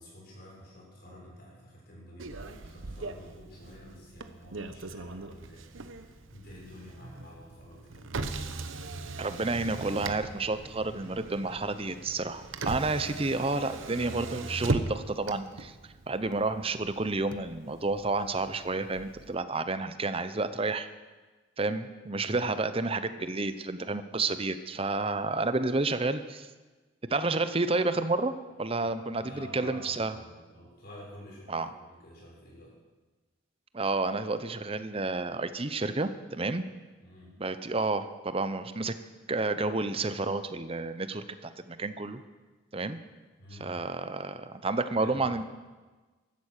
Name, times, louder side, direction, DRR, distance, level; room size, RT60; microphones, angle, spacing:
voice 1, 0.0-8.1 13.0-13.2 22.3-22.5 29.0-32.7 37.0-37.3 43.4-43.7 44.9-45.4, equal, 50° left, -3 dB, 7.0 m, -50 dB
Motor vehicle (road), 2.2-19.3, right 3 dB, 85° right, 1.0 m, -39 dB
voice 2, 9.2-15.7 16.1-20.9 21.6-26.5 27.1-28.3 28.6-30.1 31.5-31.7 33.7-36.6 37.4-38.9 39.3-42.2 42.7-43.0 43.6-45.4, right 3 dB, 30° right, 11 dB, 0.8 m, -30 dB
16.0 x 12.5 x 6.6 m, 1.3 s
head